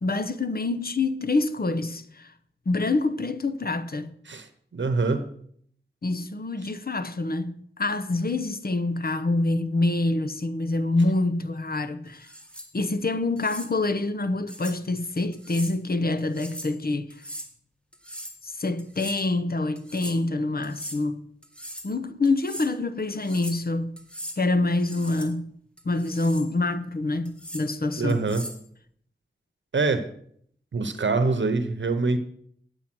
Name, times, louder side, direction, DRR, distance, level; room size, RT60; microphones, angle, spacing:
voice 1, 0.0-2.3 2.7-4.1 6.0-12.3 12.7-17.2 18.4-21.2 21.8-24.0 24.4-25.6 25.8-28.2, left 2 dB, 50° left, 0.9 m, -26 dB
voice 2, 4.7-5.3 28.0-28.4 29.7-30.1 30.7-32.2, right 3 dB, 75° right, 0.9 m, -24 dB
sound 1, 12.2-12.7 13.4-13.7 14.5-14.8 15.3-15.8 16.2-16.8 17.1-17.5 17.9-18.4 18.8-19.3 19.8-20.2 20.6-21.0 21.4-21.9 22.2-22.7 23.1-23.6 24.0-24.4 24.8-25.3 25.8-26.5 27.3-27.7 28.1-28.6, equal, 5° left, 1.9 m, -40 dB
8.6 x 8.1 x 6.1 m
cardioid pair, 45°, 19 cm